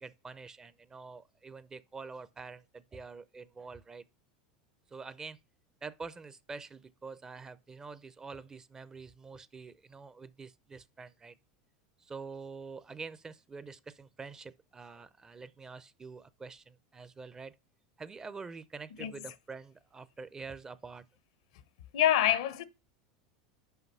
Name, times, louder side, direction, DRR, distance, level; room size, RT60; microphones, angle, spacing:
voice 1, 0.0-4.0 4.9-5.4 5.8-11.3 12.0-17.6 18.0-21.0, right 4 dB, 20° right, 0.5 m, -46 dB
voice 2, 21.9-22.6, left 12 dB, 75° left, 0.8 m, -26 dB
5.8 x 5.3 x 5.4 m
hypercardioid pair, 100°, 3 cm